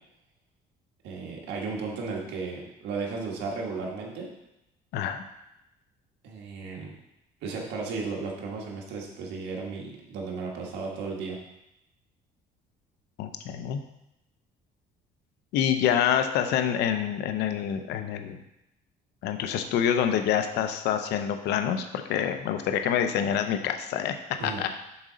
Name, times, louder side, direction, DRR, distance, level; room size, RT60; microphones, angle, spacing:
voice 1, 1.0-4.3 6.2-6.9 7.4-11.4 24.4-24.6, right 4 dB, 85° right, -1 dB, 1.5 m, -34 dB
voice 2, 4.9-5.2 13.2-13.8 15.5-18.4 19.2-24.2 24.4-24.7, left 9 dB, 80° left, 7 dB, 0.7 m, -26 dB
7.1 x 3.8 x 5.1 m, 0.88 s
cardioid pair, 110°, 17 cm